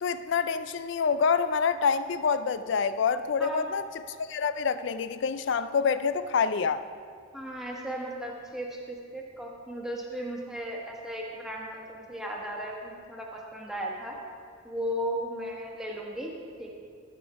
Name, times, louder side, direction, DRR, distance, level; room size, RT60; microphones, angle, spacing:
voice 1, 0.0-3.8 4.2-6.8, left 5 dB, 60° left, 13 dB, 0.4 m, -27 dB
voice 2, 3.4-3.7 7.3-14.2 14.6-16.8, equal, ahead, -2 dB, 1.3 m, -36 dB
14.0 x 7.0 x 4.8 m, 2.2 s
head